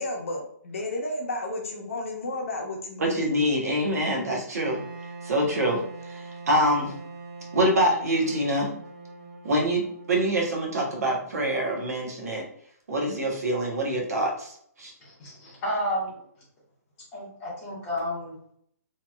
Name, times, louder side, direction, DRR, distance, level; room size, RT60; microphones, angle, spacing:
voice 1, 0.0-3.3, left 2 dB, 50° left, 0 dB, 0.8 m, -32 dB
voice 2, 3.0-4.8 5.2-6.9 7.5-8.7 9.4-12.4 12.9-14.9, right 1 dB, 60° right, -1 dB, 1.0 m, -25 dB
Wind instrument woodwind instrument, 4.6-11.6, right 3 dB, 40° right, 0.6 m, -43 dB
voice 3, 15.0-16.2 17.1-18.3, equal, 15° left, -7 dB, 0.9 m, -31 dB
2.8 x 2.8 x 2.3 m, 0.65 s
hypercardioid pair, 175°, 9 cm